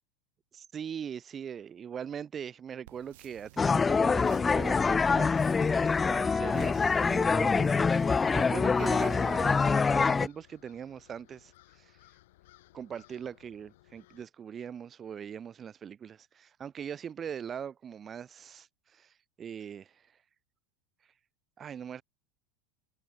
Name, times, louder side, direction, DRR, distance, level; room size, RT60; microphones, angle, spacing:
voice 1, 0.5-12.0 12.7-20.1 21.6-22.0, right 8 dB, 30° right, 4.9 m, -41 dB
sound 1, 2.8-10.3, right 18 dB, 75° right, 3.3 m, -58 dB
sound 2, 3.6-10.3, left 5 dB, 20° left, 0.4 m, -25 dB
sound 3, 8.1-14.2, left 17 dB, 75° left, 4.9 m, -60 dB
supercardioid pair, 115°, 0 cm